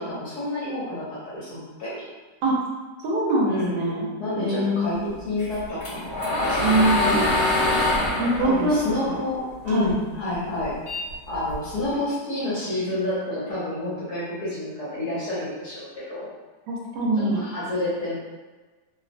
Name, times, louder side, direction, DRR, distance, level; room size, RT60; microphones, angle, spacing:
voice 1, 0.0-2.1 3.4-6.8 8.4-10.8 11.3-16.3 17.2-18.1, left 1 dB, 70° left, -10 dB, 1.2 m, -29 dB
voice 2, 3.0-4.1 4.4-5.0 6.6-7.2 8.2-9.2 9.7-9.9 16.7-17.4, right 1 dB, 80° right, -2 dB, 1.2 m, -23 dB
sound 1, 5.4-9.9 10.3-11.8, left 1 dB, 50° left, 1.0 m, -24 dB
3.0 x 2.0 x 2.4 m, 1.3 s
omnidirectional pair, 1.9 m